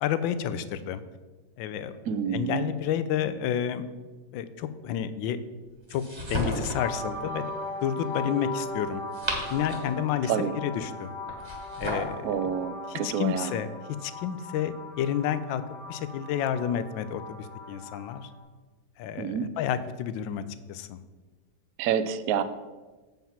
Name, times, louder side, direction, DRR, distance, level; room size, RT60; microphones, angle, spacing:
voice 1, 0.0-1.0 1.6-1.9 2.3-3.9 4.3-5.4 5.9-6.0 6.3-7.4 7.8-9.0 9.5-10.3 10.6-11.1 11.8-12.3 12.9-13.7 14.0-15.6 15.9-18.3 19.0-21.0, left 9 dB, 85° left, 13 dB, 1.3 m, -30 dB
voice 2, 2.1-2.7 10.3-10.5 12.2-13.5 19.2-19.5 21.8-22.4, right 8 dB, 75° right, 11 dB, 0.8 m, -28 dB
sound 1, 5.9-6.9 8.9-10.0 11.3-12.2, equal, 15° right, 1.3 m, -33 dB
sound 2, 6.7-18.3, left 2 dB, 60° left, 2.5 m, -39 dB
7.3 x 5.6 x 5.7 m, 1.3 s
omnidirectional pair, 2.0 m